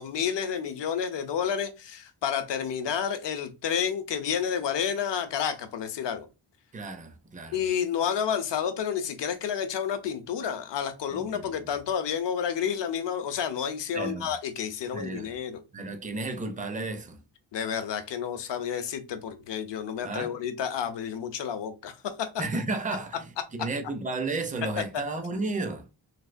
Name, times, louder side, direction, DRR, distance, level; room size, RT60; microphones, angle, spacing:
voice 1, 0.0-6.3 7.5-15.6 17.5-22.3 24.6-24.7, left 8 dB, 65° left, 0.7 m, -30 dB
voice 2, 6.7-7.6 11.1-11.4 13.9-14.3 14.9-15.3 15.7-17.2 20.0-20.3 22.4-25.8, right 3 dB, 20° right, 0.5 m, -33 dB
3.3 x 2.7 x 2.4 m
wide cardioid pair, 120°, 46 cm